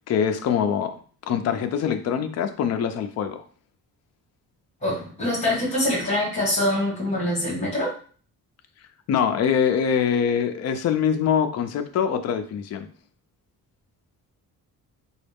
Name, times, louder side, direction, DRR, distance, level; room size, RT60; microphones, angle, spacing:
voice 1, 0.1-0.9 1.3-3.4 9.1-12.9, left 7 dB, 45° left, 7 dB, 0.4 m, -23 dB
voice 2, 4.8-7.9, left 1 dB, 20° left, -4 dB, 1.5 m, -24 dB
4.0 x 2.3 x 3.4 m, 0.43 s
wide cardioid pair, 175°, 36 cm